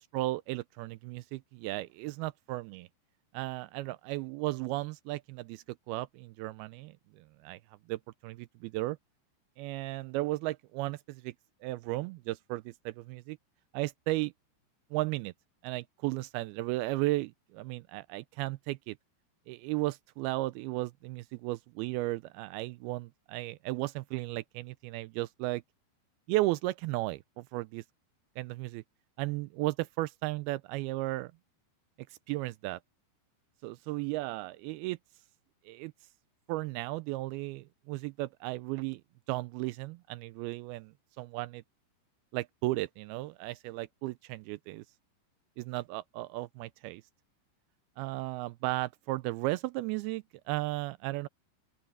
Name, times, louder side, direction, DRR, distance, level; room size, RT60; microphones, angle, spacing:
voice 1, 0.0-2.9 3.3-7.6 7.9-9.0 9.6-11.3 11.6-13.4 13.7-14.3 14.9-15.3 15.6-19.0 19.5-25.6 26.3-27.8 28.4-28.8 29.2-31.3 32.3-32.8 33.6-35.0 35.7-35.9 36.5-39.0 39.3-41.6 42.3-44.8 45.6-47.0 48.0-51.3, right 19 dB, 90° right, 2.2 m, -35 dB
open air
omnidirectional pair, 5.0 m